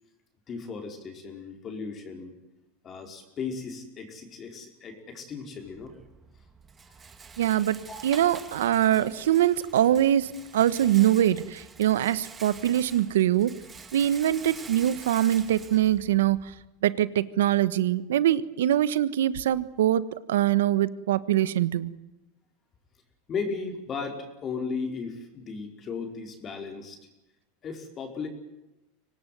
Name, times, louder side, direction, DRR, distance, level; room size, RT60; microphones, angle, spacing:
voice 1, 0.5-2.3 2.8-5.9 7.9-8.0 9.0-9.1 23.3-27.0 27.6-28.3, left 5 dB, 30° left, 4 dB, 5.0 m, -36 dB
Rattle, 5.6-16.6, right 5 dB, 20° right, 2.7 m, -47 dB
voice 2, 7.4-13.5 13.9-16.5 16.8-21.9, right 12 dB, 90° right, 16 dB, 1.3 m, -23 dB
25.0 x 18.5 x 9.4 m, 0.95 s
supercardioid pair, 125°, 0 cm